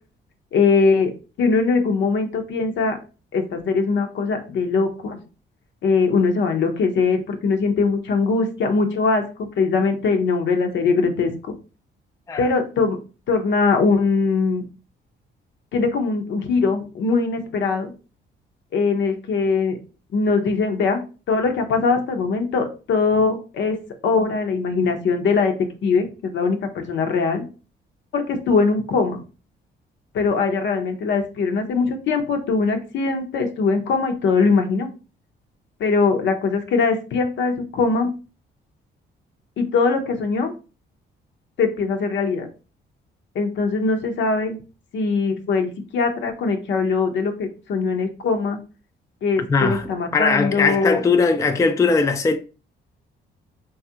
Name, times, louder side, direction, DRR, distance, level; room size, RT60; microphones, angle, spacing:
voice 1, 0.5-1.1 1.4-3.0 3.3-5.2 5.8-9.2 9.6-11.5 12.4-13.0 13.3-14.6 15.7-17.9 18.7-19.8 20.1-21.0 21.3-23.8 24.0-25.5 25.8-27.4 28.1-29.2 30.1-34.9 35.8-38.1 39.6-40.5 41.6-42.5 43.3-44.6 44.9-48.6 49.2-51.0, left 4 dB, 65° left, 0.7 m, -21 dB
voice 2, 49.5-49.9 50.1-52.4, left 4 dB, 15° left, 0.4 m, -19 dB
3.3 x 2.4 x 2.7 m
cardioid pair, 90°, 20 cm